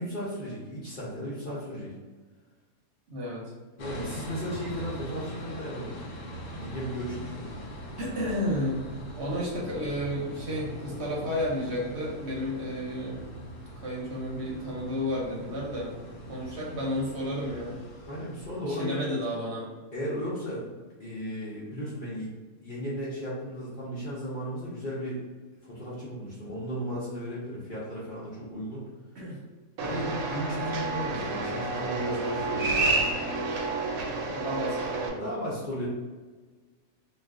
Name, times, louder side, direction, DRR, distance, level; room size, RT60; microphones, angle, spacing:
voice 1, 0.0-1.9 3.8-6.2 6.6-7.5 18.1-19.1 19.9-20.7 21.0-22.3 22.6-25.2 25.6-28.8 29.8-32.9 33.9-34.3 35.2-35.9, equal, 50° left, -7 dB, 0.7 m, -35 dB
voice 2, 3.1-3.5 8.0-13.2 13.8-15.9 16.3-17.8 18.6-19.6 29.1-29.4 34.3-35.6, equal, 60° right, -4 dB, 0.8 m, -32 dB
sound 1, 3.8-18.9, equal, 70° left, 0.9 m, -42 dB
sound 2, 29.8-35.1, right 3 dB, 85° right, 1.0 m, -29 dB
2.4 x 2.3 x 3.5 m, 1.3 s
omnidirectional pair, 1.4 m